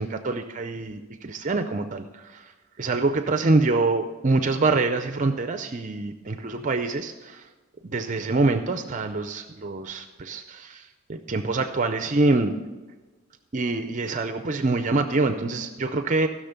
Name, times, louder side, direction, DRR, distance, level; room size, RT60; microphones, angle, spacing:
voice 1, 0.0-2.0 2.8-7.1 7.8-10.8 11.1-12.5 13.5-16.3, right 3 dB, 35° right, 9 dB, 0.5 m, -25 dB
15.5 x 6.3 x 6.7 m, 1.3 s
head